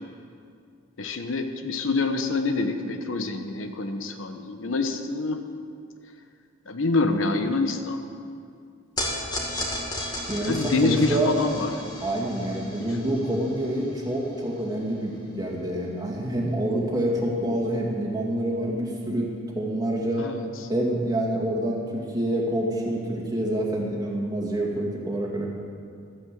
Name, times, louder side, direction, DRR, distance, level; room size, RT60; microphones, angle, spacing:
voice 1, 1.0-5.4 6.7-8.0 10.5-11.7 13.0-13.1 20.2-20.4, left 3 dB, 80° left, 6 dB, 1.0 m, -26 dB
sound 1, 9.0-15.4, left 1 dB, 20° left, 2.3 m, -35 dB
voice 2, 10.3-11.3 12.0-19.3 19.6-20.3 20.7-25.5, right 1 dB, 20° right, -2 dB, 2.1 m, -27 dB
13.5 x 9.5 x 7.6 m, 2.3 s
head